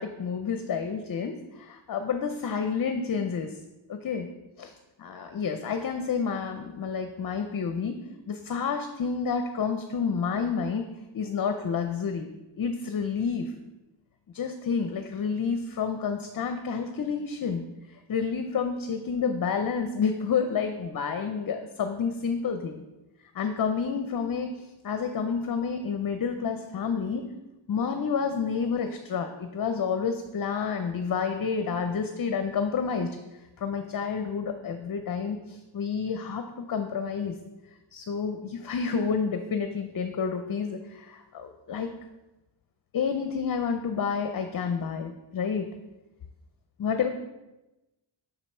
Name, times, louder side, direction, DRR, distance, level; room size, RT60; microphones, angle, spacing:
voice 1, 0.0-3.5 3.9-4.3 4.6-4.7 5.0-10.8 11.1-12.3 12.6-13.5 14.3-17.6 18.1-22.8 23.3-24.5 24.8-27.3 27.7-33.1 33.6-37.3 37.9-41.9 42.9-45.7 46.8-47.1, left 6 dB, 45° left, 6 dB, 0.6 m, -29 dB
6.2 x 5.1 x 4.3 m, 1.0 s
wide cardioid pair, 80°, 47 cm